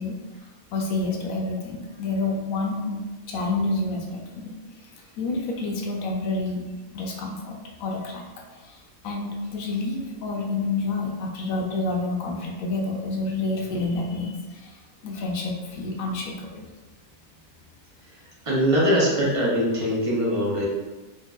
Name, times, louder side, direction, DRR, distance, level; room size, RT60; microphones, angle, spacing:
voice 1, 0.0-3.0 3.3-6.7 6.9-16.7, left 3 dB, 75° left, 0 dB, 0.9 m, -29 dB
voice 2, 18.5-20.6, equal, 30° right, -5 dB, 0.7 m, -22 dB
4.3 x 2.6 x 2.3 m, 1.1 s
omnidirectional pair, 1.5 m